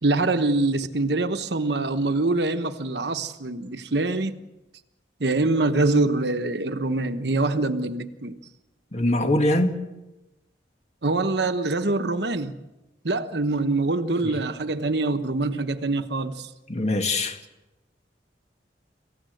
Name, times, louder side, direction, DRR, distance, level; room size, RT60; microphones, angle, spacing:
voice 1, 0.0-4.3 5.2-8.4 11.0-12.6 13.0-16.5, right 2 dB, 65° right, 1.1 m, -24 dB
voice 2, 8.9-9.8 14.2-14.3 16.7-17.4, left 1 dB, 40° left, 2.1 m, -22 dB
27.5 x 15.5 x 7.8 m
head